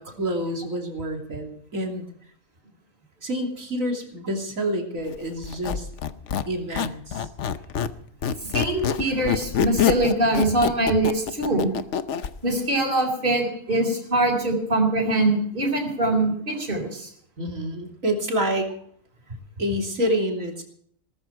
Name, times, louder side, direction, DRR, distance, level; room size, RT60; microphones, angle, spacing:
voice 1, 0.0-2.1 3.2-5.9 6.5-7.3 17.4-18.7 19.6-20.6, equal, 85° right, 1 dB, 3.4 m, -28 dB
Squeak, 5.4-12.3, left 8 dB, 65° left, 1.1 m, -25 dB
voice 2, 8.4-11.7 12.4-17.1, right 2 dB, 40° right, -1 dB, 4.3 m, -23 dB
19.0 x 14.0 x 4.7 m, 0.62 s
omnidirectional pair, 1.4 m